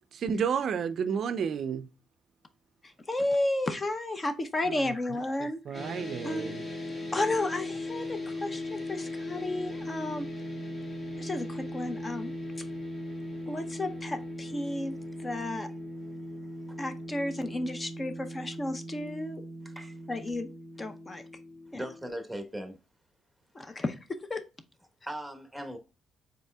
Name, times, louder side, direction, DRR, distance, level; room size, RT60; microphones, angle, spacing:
voice 1, 0.0-1.9 4.7-4.9 5.4-6.6, right 7 dB, 60° right, 0.4 m, -31 dB
voice 2, 3.1-5.8 6.2-6.6 7.1-10.3 11.2-12.3 13.5-15.0 15.2-15.7 16.8-19.4 20.1-20.5 20.8-21.2 21.7-21.8 23.5-24.4, left 2 dB, 25° left, 0.6 m, -32 dB
sound 1, 5.7-22.1, left 1 dB, 45° left, 2.0 m, -39 dB
voice 3, 19.6-20.0 21.7-22.8 25.1-25.8, right 1 dB, ahead, 1.2 m, -39 dB
5.4 x 4.0 x 2.2 m
cardioid pair, 90°, 0 cm